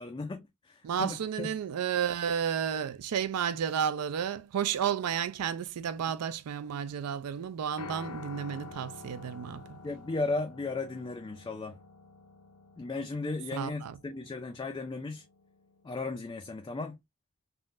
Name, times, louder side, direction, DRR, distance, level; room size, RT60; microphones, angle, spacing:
voice 1, 0.0-1.5 9.8-11.8 12.8-15.2 15.8-17.0, left 3 dB, 20° left, 0.3 m, -35 dB
voice 2, 0.8-9.8 13.5-14.0, right 8 dB, 80° right, 0.4 m, -32 dB
Piano, 7.8-16.0, left 3 dB, 85° left, 0.5 m, -49 dB
3.6 x 2.1 x 2.4 m
head